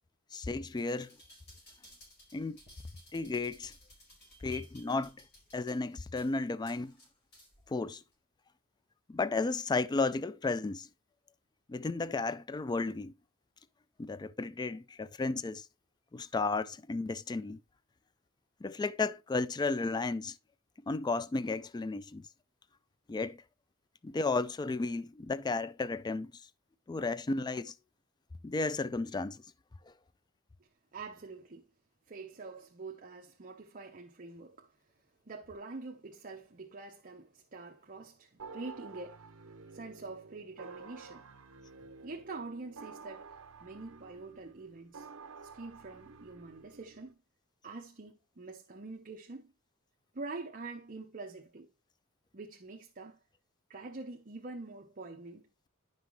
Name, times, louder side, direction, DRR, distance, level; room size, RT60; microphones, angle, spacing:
voice 1, 0.3-1.1 2.3-2.6 3.1-3.7 4.4-5.2 5.5-6.9 7.7-8.0 9.1-10.9 11.7-13.1 14.0-15.7 16.1-17.6 18.6-20.4 20.9-22.3 23.1-23.4 24.0-26.3 26.9-27.7 28.4-29.4, left 3 dB, 20° left, 0.3 m, -33 dB
sound 1, 0.7-7.7 8.1-8.2, equal, 50° left, 4.6 m, -58 dB
voice 2, 30.9-31.7 32.1-34.7 35.3-39.2 39.7-41.3 42.0-45.1 45.5-47.1 47.6-49.5 50.1-51.7 52.3-53.2 53.7-55.4, right 3 dB, 40° right, 0.9 m, -45 dB
sound 2, 38.4-47.1, right 4 dB, 70° right, 0.7 m, -51 dB
10.5 x 5.8 x 3.1 m
head